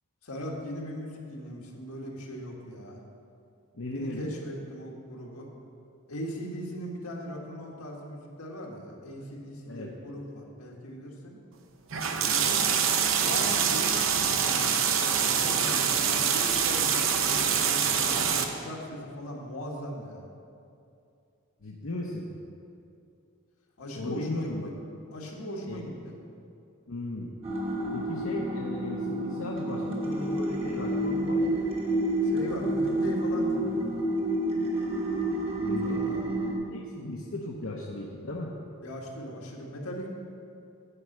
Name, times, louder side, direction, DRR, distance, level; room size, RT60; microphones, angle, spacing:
voice 1, 0.2-3.0 3.9-5.5 6.1-11.4 12.3-12.7 13.1-20.3 23.8-24.5 25.1-26.2 32.2-33.9 35.8-36.2 38.8-40.1, equal, 80° left, -1 dB, 1.7 m, -39 dB
voice 2, 3.7-4.3 9.7-9.9 21.6-22.3 23.9-24.7 25.7-25.9 26.9-27.3 27.9-31.6 35.6-36.0 36.4-38.5, left 1 dB, 65° left, -3 dB, 0.8 m, -36 dB
sound 1, 11.9-18.4, right 7 dB, 60° right, 0.7 m, -25 dB
sound 2, 27.4-36.5, right 1 dB, 25° right, 1.2 m, -29 dB
9.7 x 5.6 x 7.3 m, 2.6 s
head